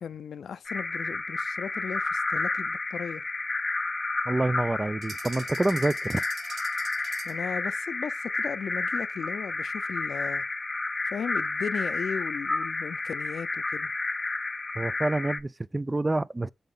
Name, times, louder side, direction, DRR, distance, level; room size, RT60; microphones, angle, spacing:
voice 1, 0.0-3.2 7.2-10.5 11.1-13.9, left 7 dB, 85° left, 0.5 m, -36 dB
sound 1, 0.7-15.4, left 3 dB, 30° left, 0.6 m, -31 dB
voice 2, 4.3-6.2 14.8-16.5, right 2 dB, 20° right, 0.4 m, -27 dB
sound 2, 5.0-7.5, right 6 dB, 75° right, 0.8 m, -44 dB
6.9 x 5.2 x 3.8 m
wide cardioid pair, 95°, 0 cm